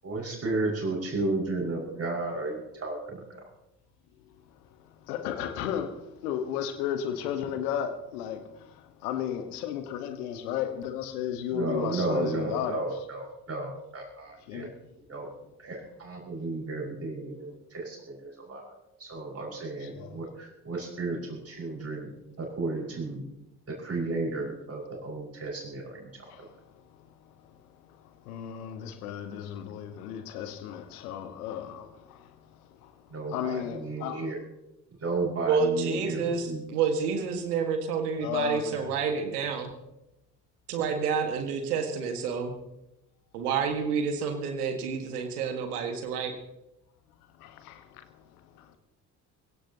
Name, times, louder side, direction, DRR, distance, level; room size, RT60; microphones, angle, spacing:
voice 1, 0.0-3.4 11.5-14.7 15.1-15.3 15.6-18.7 19.0-22.1 22.4-23.2 23.7-26.1 26.4-26.5 33.1-34.4 35.0-36.7, right 3 dB, 30° right, 5.6 m, -33 dB
voice 2, 5.1-8.5 9.0-12.8 14.5-14.7 20.0-20.1 28.3-31.9 33.3-34.2 38.2-38.9 47.4-47.8, left 9 dB, 70° left, 1.5 m, -33 dB
voice 3, 35.4-39.7 40.7-42.5 43.3-46.3, right 5 dB, 70° right, 1.8 m, -29 dB
22.0 x 16.5 x 2.9 m
figure-of-eight pair, 45°, 47 cm